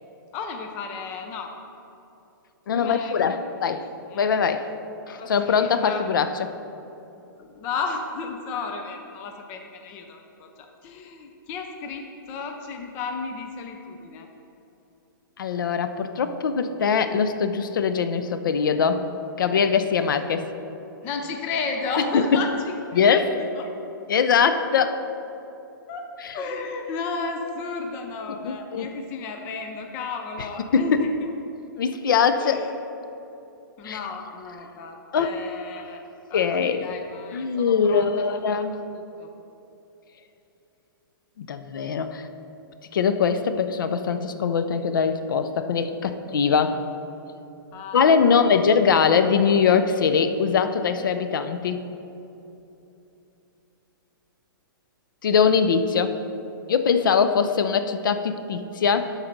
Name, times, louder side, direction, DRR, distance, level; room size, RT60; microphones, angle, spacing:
voice 1, 0.3-1.5 2.8-3.4 4.1-4.2 5.2-6.3 7.4-14.3 19.8-20.1 21.0-23.3 23.6-23.7 25.9-31.3 32.4-32.7 33.8-36.0 36.3-38.6 38.9-39.3 47.7-48.4, left 4 dB, 15° left, 4 dB, 0.4 m, -34 dB
voice 2, 2.7-3.9 4.1-4.7 5.1-6.3 15.4-19.1 19.4-20.5 22.1-22.4 22.9-23.3 24.1-25.0 26.2-26.3 28.3-28.9 30.7-31.1 31.8-32.6 33.8-34.0 35.1-35.3 36.3-36.9 37.3-38.7 41.4-42.3 42.9-46.8 47.9-51.8 55.2-56.2 56.7-59.1, left 6 dB, 65° left, 10 dB, 0.6 m, -22 dB
12.0 x 4.2 x 5.1 m, 2.9 s
hypercardioid pair, 170°, 12 cm